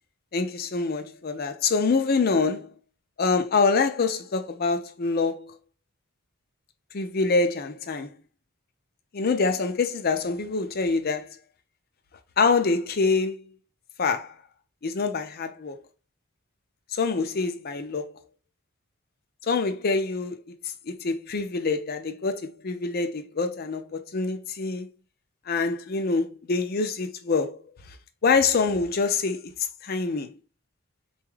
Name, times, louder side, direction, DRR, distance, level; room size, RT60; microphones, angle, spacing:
voice 1, 0.3-2.7 3.2-5.6 6.9-8.1 9.1-11.4 12.4-13.5 14.0-14.3 14.8-15.8 16.9-18.2 19.4-20.4 20.9-24.9 25.5-27.6 28.2-29.5 29.8-30.3, left 4 dB, 45° left, 0.5 m, -25 dB
4.1 x 2.3 x 3.1 m
head